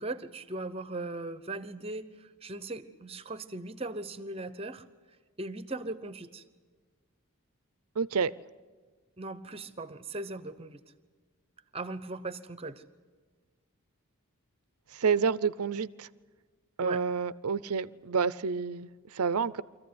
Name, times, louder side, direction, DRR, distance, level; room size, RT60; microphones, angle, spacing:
voice 1, 0.0-4.8 5.4-6.4 9.2-10.8 11.7-12.8 16.8-17.0, right 2 dB, 25° right, 14 dB, 0.9 m, -38 dB
voice 2, 8.0-8.3 14.9-16.1 16.8-19.6, right 5 dB, 80° right, 18 dB, 0.6 m, -29 dB
24.0 x 15.0 x 9.6 m, 1.5 s
head